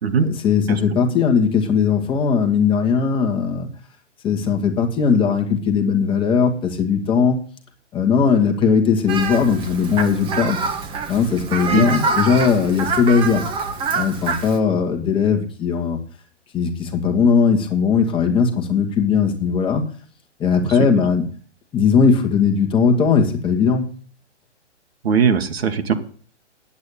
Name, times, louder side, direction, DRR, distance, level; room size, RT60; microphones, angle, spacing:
voice 1, 0.2-3.7 4.2-7.4 7.9-10.6 11.1-13.4 13.9-16.0 16.5-19.8 20.4-21.2 21.7-23.9, left 6 dB, 15° left, 4 dB, 1.5 m, -18 dB
Fowl, 9.1-14.6, right 4 dB, 15° right, 1.2 m, -26 dB
voice 2, 25.0-25.9, right 6 dB, 55° right, 6 dB, 1.9 m, -19 dB
9.5 x 8.6 x 8.4 m, 0.42 s
figure-of-eight pair, 125°, 36 cm